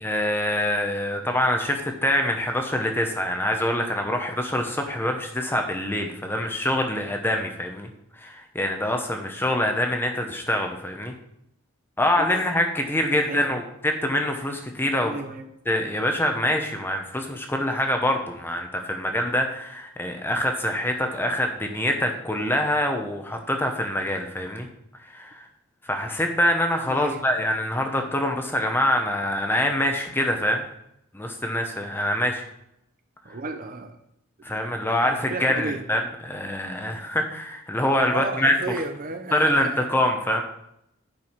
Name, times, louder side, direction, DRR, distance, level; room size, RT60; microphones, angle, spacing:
voice 1, 0.0-7.9 8.2-11.1 12.0-15.1 15.7-24.7 25.0-25.5 25.8-30.6 31.1-32.4 34.4-38.5 39.3-40.4, left 1 dB, 10° left, 4 dB, 0.9 m, -25 dB
voice 2, 13.1-13.6 15.0-15.5 26.8-27.2 27.9-28.0 33.2-34.0 35.0-35.8 38.1-39.9, right 3 dB, 40° right, 6 dB, 0.7 m, -33 dB
8.9 x 6.2 x 4.6 m, 0.78 s
head